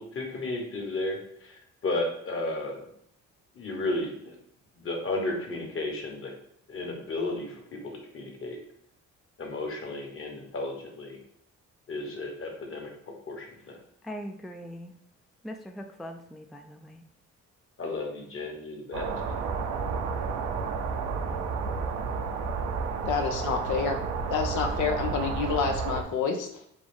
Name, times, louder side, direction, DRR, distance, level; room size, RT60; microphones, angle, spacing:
voice 1, 0.0-2.8 3.5-4.3 4.8-6.3 6.7-8.6 9.4-11.2 11.9-13.8 17.8-19.1, left 2 dB, 45° left, 1 dB, 1.3 m, -33 dB
voice 2, 14.0-14.9 15.4-17.0, equal, ahead, 5 dB, 0.3 m, -41 dB
sound 1, 18.9-26.0, right 5 dB, 75° right, 0.7 m, -31 dB
voice 3, 23.0-24.0 24.3-26.7, left 6 dB, 80° left, 4 dB, 0.7 m, -28 dB
5.2 x 2.5 x 3.5 m, 0.71 s
cardioid pair, 90°, 30 cm